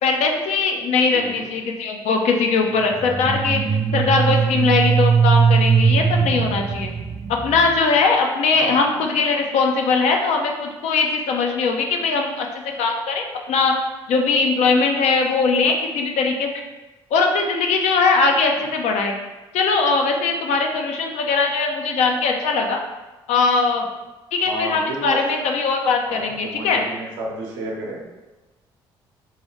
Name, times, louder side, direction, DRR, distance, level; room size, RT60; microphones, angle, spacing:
voice 1, 0.0-6.9 7.4-12.5 12.8-13.7 14.1-16.5 17.1-19.1 19.5-22.8 23.3-23.9 24.3-26.8, left 4 dB, 65° left, 2 dB, 0.5 m, -20 dB
voice 2, 1.1-1.5 4.4-4.9 8.5-9.0 24.5-25.5 26.1-28.0, right 1 dB, 80° right, -3 dB, 0.7 m, -31 dB
sound 1, 2.9-7.8, right 6 dB, 30° right, 0.4 m, -19 dB
3.1 x 2.3 x 3.0 m, 1.1 s
hypercardioid pair, 50°, 12 cm